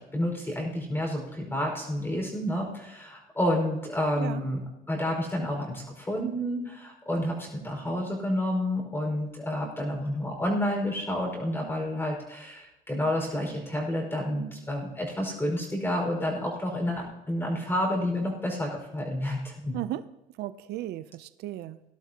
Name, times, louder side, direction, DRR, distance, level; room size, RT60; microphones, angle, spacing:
voice 1, 0.0-4.6 4.9-19.8, left 1 dB, 15° left, -1 dB, 4.9 m, -30 dB
voice 2, 19.7-20.1 20.4-21.8, right 14 dB, 75° right, 14 dB, 0.5 m, -35 dB
18.5 x 12.0 x 2.9 m, 0.96 s
cardioid pair, 110°, 17 cm